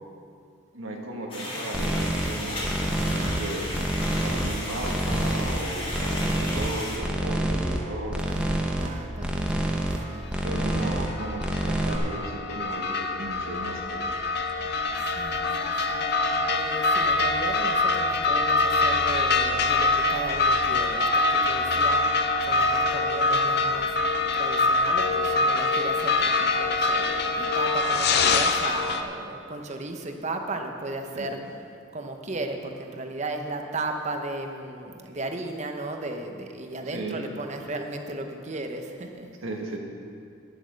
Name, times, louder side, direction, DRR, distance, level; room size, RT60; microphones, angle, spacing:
voice 1, 0.7-3.7 4.2-8.3 10.4-14.0 31.1-31.4 36.8-37.2 39.4-39.8, right 1 dB, 80° right, 0 dB, 1.5 m, -35 dB
sound 1, 1.3-7.0, left 1 dB, 25° left, 2.4 m, -34 dB
sound 2, 1.7-2.3 2.6-3.4 3.7-4.5 4.8-5.6 5.9-6.7 7.0-7.8 8.1-8.9 9.2-10.0 10.3-11.1 11.4-12.0, right 1 dB, 5° right, 0.8 m, -27 dB
voice 2, 8.3-10.4 10.8-10.9 15.0-22.0 22.4-23.9 24.3-31.4 31.9-39.3, right 2 dB, 35° right, 4 dB, 0.8 m, -35 dB
sound 3, 10.5-29.0, left 3 dB, 50° left, 0.6 m, -24 dB
10.5 x 7.8 x 6.3 m, 2.4 s
head